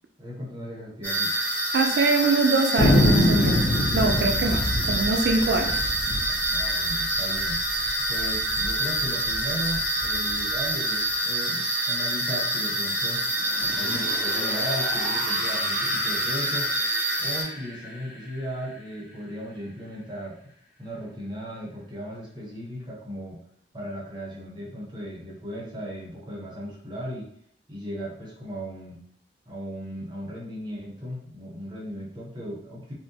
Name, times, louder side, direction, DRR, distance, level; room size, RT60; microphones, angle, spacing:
voice 1, 0.2-1.5 4.4-4.5 6.5-7.6 8.1-13.2 13.6-16.7 17.2-20.3 20.8-23.4 23.7-27.3 27.7-29.0 29.5-32.9, equal, 25° right, -4 dB, 0.6 m, -36 dB
sound 1, 1.0-17.4, right 1 dB, 10° left, 0.8 m, -27 dB
voice 2, 1.7-5.9, right 3 dB, 65° right, 4 dB, 0.3 m, -24 dB
Thunder, 2.8-7.6 7.9-8.0 8.2-8.7 9.2-10.4, left 1 dB, 80° left, 0.5 m, -24 dB
sound 2, 13.2-20.2, left 1 dB, 40° left, 0.6 m, -38 dB
2.5 x 2.1 x 2.7 m, 0.66 s
head